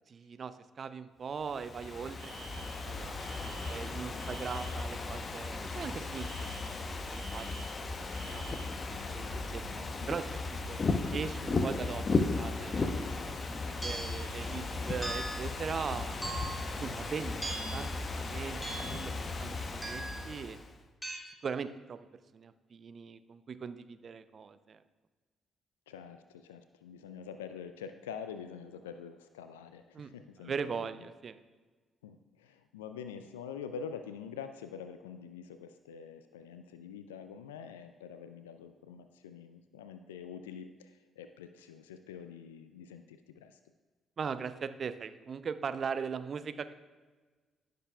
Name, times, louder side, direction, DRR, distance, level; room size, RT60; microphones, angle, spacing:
voice 1, 0.1-8.4 9.1-10.8 11.1-12.0 12.3-16.2 16.8-17.4 17.7-17.9 18.2-19.1 19.4-20.6 21.4-22.1 22.3-24.8 29.9-30.1 30.4-31.4 44.2-46.7, right 6 dB, 45° right, 12 dB, 0.5 m, -40 dB
Ocean / Fireworks, 1.4-20.7, left 3 dB, 40° left, 0.8 m, -36 dB
Alarm, 2.2-4.9 6.1-8.8, right 4 dB, 65° right, 1.0 m, -51 dB
sound 1, 13.8-14.2 15.0-15.5 16.2-16.7 17.4-17.9 18.6-19.1 19.8-20.2 21.0-21.2, right 2 dB, 10° right, 2.1 m, -39 dB
voice 2, 25.9-30.9 32.0-43.6, left 7 dB, 80° left, 9 dB, 0.3 m, -46 dB
16.5 x 6.6 x 2.3 m, 1.4 s
figure-of-eight pair, 40°, 0 cm